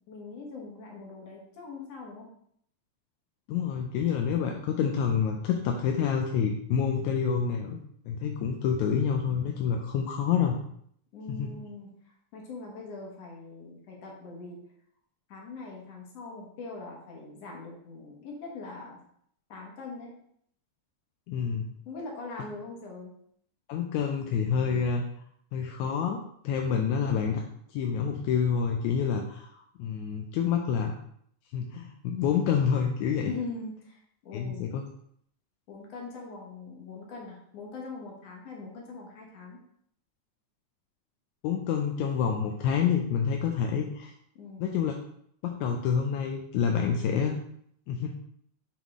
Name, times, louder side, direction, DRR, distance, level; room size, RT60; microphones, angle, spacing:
voice 1, 0.1-2.3 11.1-11.9 12.3-14.6 15.3-19.0 19.5-20.1 21.9-23.1 33.2-34.7 35.7-39.6 44.4-44.8, left 3 dB, 60° left, -1 dB, 2.3 m, -42 dB
voice 2, 3.5-7.8 8.1-10.5 11.3-11.5 21.3-21.7 23.7-25.0 25.5-27.4 27.7-30.9 31.5-33.3 34.3-34.8 41.4-44.1 44.6-44.9 45.4-47.4 47.9-48.1, left 7 dB, 80° left, 2 dB, 1.9 m, -28 dB
7.4 x 3.6 x 3.6 m, 0.67 s
omnidirectional pair, 3.4 m